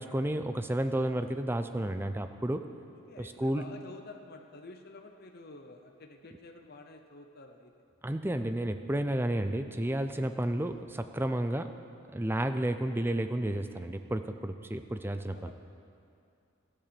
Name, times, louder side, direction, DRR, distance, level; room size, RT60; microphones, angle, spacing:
voice 1, 0.0-2.7 3.2-3.6 8.0-11.7 12.1-15.5, right 1 dB, 10° right, 8 dB, 0.5 m, -31 dB
voice 2, 3.1-7.7 14.9-15.5, left 3 dB, 50° left, 4 dB, 0.7 m, -50 dB
14.0 x 8.7 x 6.9 m, 2.5 s
head